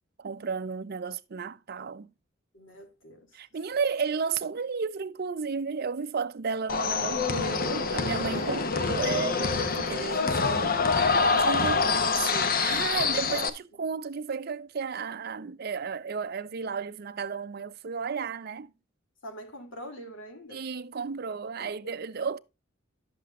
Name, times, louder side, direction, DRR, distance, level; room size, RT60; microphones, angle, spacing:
voice 1, 0.2-2.1 3.3-10.8 11.3-18.7 20.5-22.4, right 5 dB, 50° right, 0.5 m, -33 dB
voice 2, 2.5-3.3 8.3-8.7 9.5-10.5 12.9-13.3 19.2-20.6 21.6-21.9, equal, 70° left, 2.7 m, -44 dB
sound 1, 6.7-13.5, left 4 dB, 45° left, 0.9 m, -26 dB
11.0 x 7.8 x 2.4 m
head